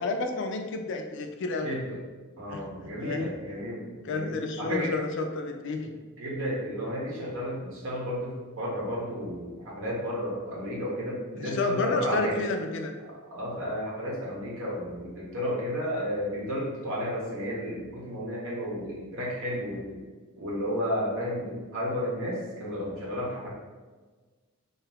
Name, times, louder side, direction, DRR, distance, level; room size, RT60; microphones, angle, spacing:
voice 1, 0.0-1.8 2.5-3.3 4.0-5.9 11.3-12.9, left 3 dB, 60° left, 4 dB, 0.4 m, -31 dB
voice 2, 1.6-2.0 2.4-4.9 5.8-5.9 6.2-12.4 13.3-20.0 20.4-23.5, equal, 70° right, -5 dB, 0.8 m, -32 dB
2.6 x 2.3 x 3.4 m, 1.3 s
head